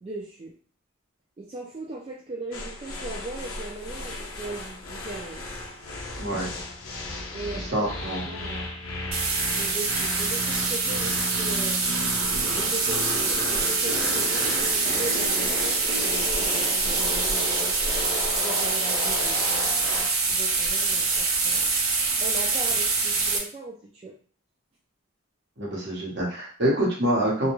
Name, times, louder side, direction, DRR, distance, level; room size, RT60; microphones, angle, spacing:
voice 1, 0.0-0.5 1.4-5.4 7.3-7.9 8.2-8.7 9.5-11.9 12.5-17.7 18.4-21.7 22.2-24.1, right 2 dB, 30° right, -4 dB, 0.3 m, -38 dB
sound 1, 2.5-20.2, left 2 dB, 90° left, 0.5 m, -34 dB
voice 2, 6.2-6.5 7.7-8.4 25.6-27.5, right 1 dB, 55° right, -5 dB, 1.0 m, -26 dB
sound 2, 9.1-23.4, right 4 dB, 85° right, 0.6 m, -25 dB
2.3 x 2.1 x 3.0 m, 0.43 s
head